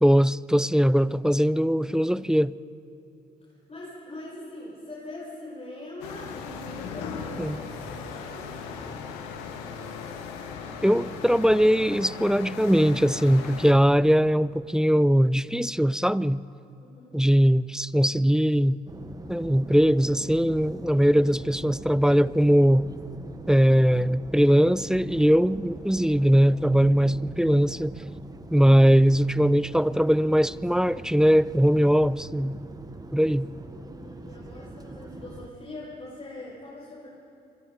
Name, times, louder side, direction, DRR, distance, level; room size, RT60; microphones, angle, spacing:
voice 1, 0.0-2.5 7.4-7.6 10.8-16.4 17.1-18.8 19.3-22.9 23.5-28.0 28.5-32.6 33.1-33.5, equal, 5° right, 19 dB, 0.4 m, -21 dB
voice 2, 3.4-9.1 16.8-17.2 21.1-21.4 33.4-37.1, left 1 dB, 30° left, -7 dB, 6.8 m, -43 dB
sound 1, 6.0-13.7, left 5 dB, 85° left, 1.9 m, -38 dB
sound 2, 18.9-35.5, right 2 dB, 20° right, 1.5 m, -42 dB
27.0 x 23.5 x 4.2 m, 2.7 s
hypercardioid pair, 50°, 20 cm